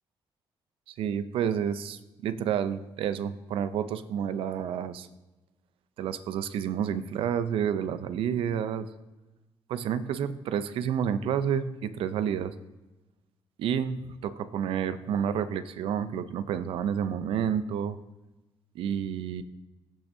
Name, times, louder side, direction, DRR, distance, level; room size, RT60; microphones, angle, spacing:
voice 1, 0.9-5.1 6.0-8.9 9.7-12.5 13.6-18.0 18.7-19.4, right 8 dB, 85° right, 13 dB, 0.5 m, -30 dB
14.5 x 6.0 x 2.7 m, 1.1 s
cardioid pair, 180°, 9 cm